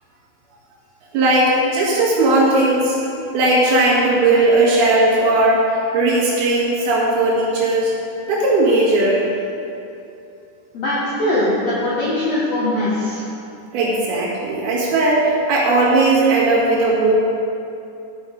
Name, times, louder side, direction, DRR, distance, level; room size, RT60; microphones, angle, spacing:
voice 1, 1.1-3.0 3.3-5.7 5.9-7.9 8.3-9.2 13.7-17.1, right 2 dB, 65° right, -6 dB, 3.5 m, -17 dB
voice 2, 10.7-13.2, left 1 dB, 65° left, -8 dB, 1.6 m, -21 dB
11.0 x 6.3 x 5.2 m, 2.7 s
omnidirectional pair, 4.9 m